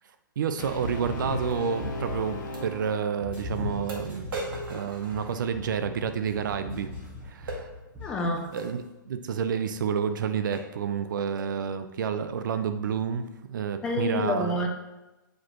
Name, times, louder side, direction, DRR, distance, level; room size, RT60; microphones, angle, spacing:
voice 1, 0.4-4.4 4.7-6.9 7.2-7.7 8.5-14.7, right 7 dB, 70° right, 9 dB, 0.5 m, -30 dB
Brass instrument, 0.6-3.7, left 2 dB, 60° left, 1.3 m, -37 dB
sound 1, 0.8-2.5 3.2-8.6, left 2 dB, 10° right, 1.3 m, -39 dB
sound 2, 1.5-1.6 2.5-2.7 3.3-3.4 3.9-5.8 7.5-7.7 8.6-8.8 9.6-9.7 10.1-10.2 10.5-10.8 11.4-11.6, right 2 dB, 90° right, 1.8 m, -38 dB
voice 2, 8.0-8.6 13.8-14.7, left 1 dB, 10° left, 2 dB, 0.4 m, -28 dB
8.1 x 5.0 x 3.0 m, 1.1 s
hypercardioid pair, 175°, 11 cm